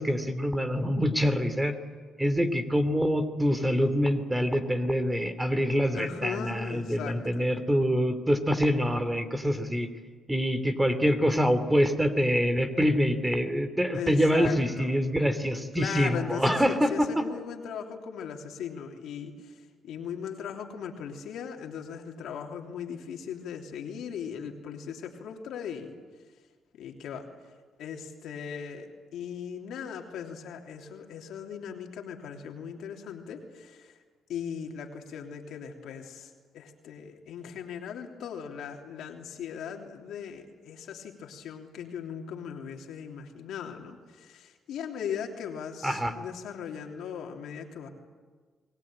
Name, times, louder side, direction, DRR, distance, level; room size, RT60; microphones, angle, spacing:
voice 1, 0.0-1.7 2.2-9.9 10.3-17.2 45.8-46.1, equal, 10° right, 9 dB, 2.9 m, -25 dB
voice 2, 5.9-7.5 13.9-14.9 15.7-19.3 19.8-25.9 26.8-27.3 27.8-33.9 34.3-36.3 36.5-47.9, left 7 dB, 80° left, 2 dB, 3.2 m, -38 dB
28.5 x 20.5 x 8.9 m, 1.5 s
cardioid pair, 90°, 0 cm